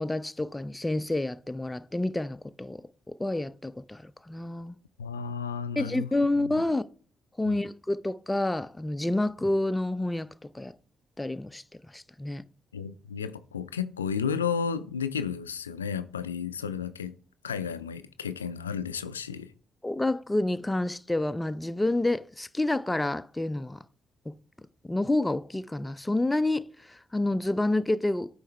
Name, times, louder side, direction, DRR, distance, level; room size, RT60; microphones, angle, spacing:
voice 1, 0.0-2.8 3.1-4.8 5.8-6.8 7.4-10.3 10.5-10.7 11.2-11.6 11.9-12.4 19.8-23.8 24.8-28.3, left 2 dB, 15° left, 0.5 m, -28 dB
voice 2, 5.0-6.1 6.4-6.5 7.5-7.6 12.7-17.2 17.4-19.5, left 6 dB, 90° left, 0.3 m, -32 dB
9.0 x 3.2 x 4.5 m
figure-of-eight pair, 40°, 0 cm